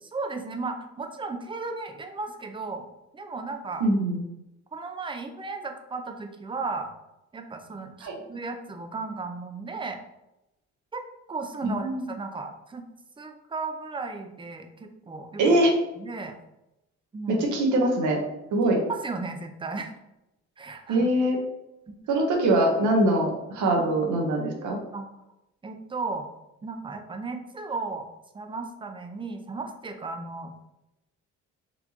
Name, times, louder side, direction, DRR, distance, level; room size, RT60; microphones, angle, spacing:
voice 1, 0.0-2.9 3.1-3.8 4.7-6.9 7.3-10.0 10.9-12.8 13.2-15.6 16.0-16.4 17.1-17.4 18.9-19.9 20.6-21.1 21.9-22.0 23.8-23.9 24.9-25.1 25.6-26.3 26.6-28.1 28.3-30.5, right 3 dB, 15° right, 5 dB, 0.5 m, -35 dB
voice 2, 3.8-4.2 8.0-8.1 11.7-12.0 15.4-15.7 17.3-18.2 18.5-18.8 20.9-21.4 22.1-24.8, right 1 dB, 85° right, 0 dB, 1.0 m, -23 dB
4.2 x 2.8 x 2.9 m, 0.91 s
cardioid pair, 90°, 30 cm